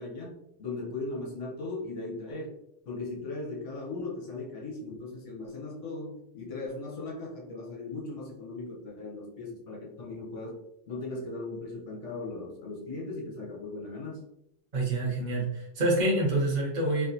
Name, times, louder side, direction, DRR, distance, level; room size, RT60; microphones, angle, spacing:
voice 1, 0.0-2.6 2.9-14.3, left 3 dB, 60° left, -2 dB, 0.8 m, -38 dB
voice 2, 14.7-17.1, right 2 dB, 35° right, -2 dB, 0.7 m, -27 dB
3.5 x 2.4 x 2.6 m, 0.79 s
omnidirectional pair, 2.1 m